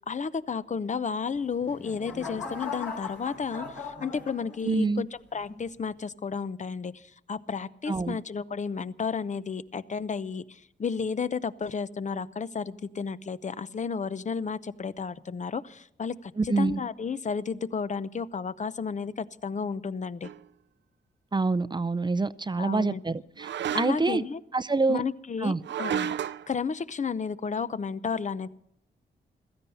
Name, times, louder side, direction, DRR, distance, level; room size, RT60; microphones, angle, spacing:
voice 1, 0.1-20.3 22.6-23.0 23.7-24.4 24.9-25.5 25.8-26.1 26.5-28.5, left 5 dB, 40° left, 0.7 m, -32 dB
sound 1, 1.4-4.9 5.5-5.8, left 5 dB, 75° left, 5.5 m, -39 dB
voice 2, 4.6-5.0 7.9-8.2 16.4-16.8 21.3-23.5 23.8-24.2 24.5-25.0 25.4-25.6, right 3 dB, 25° right, 0.5 m, -26 dB
sound 2, 20.2-20.4 23.4-24.2 25.6-26.5, right 10 dB, 75° right, 0.5 m, -32 dB
16.0 x 14.0 x 5.5 m
cardioid pair, 75°, 19 cm